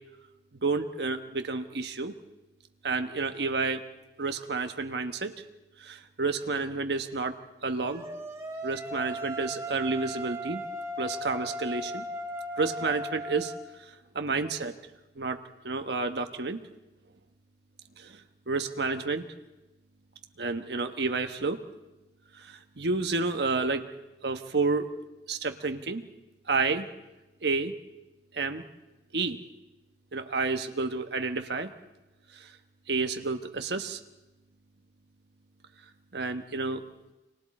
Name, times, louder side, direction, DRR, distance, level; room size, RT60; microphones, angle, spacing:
voice 1, 0.6-2.1 2.8-3.9 4.2-5.3 5.8-7.3 7.6-8.0 8.6-10.6 11.0-12.0 12.6-13.5 14.1-14.7 15.2-15.4 15.6-16.6 18.0-18.2 18.5-19.2 20.4-21.6 22.4-23.8 24.2-24.9 25.3-26.0 26.5-26.9 27.4-27.7 28.3-28.6 29.1-29.4 30.1-31.7 32.9-34.0 36.1-36.8, right 3 dB, 70° right, 6 dB, 1.1 m, -30 dB
sound 1, 7.8-13.6, equal, 15° right, 2.8 m, -37 dB
30.0 x 25.0 x 4.3 m, 1.0 s
head